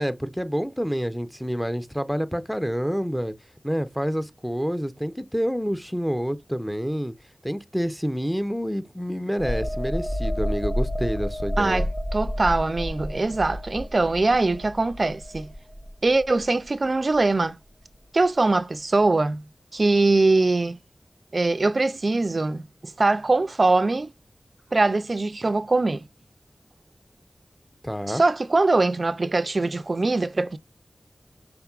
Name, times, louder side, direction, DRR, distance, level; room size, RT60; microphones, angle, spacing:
voice 1, 0.0-3.3 3.6-7.1 7.4-11.9 27.8-28.2, equal, ahead, 0.5 m, -28 dB
sound 1, 9.4-16.8 17.2-17.4, equal, 50° left, 0.8 m, -30 dB
voice 2, 11.6-11.9 12.1-15.5 16.0-17.6 18.1-19.4 19.7-20.8 21.3-24.1 24.7-26.0 28.1-30.6, right 3 dB, 50° right, 0.3 m, -22 dB
5.8 x 3.6 x 2.3 m
wide cardioid pair, 80°, 0 cm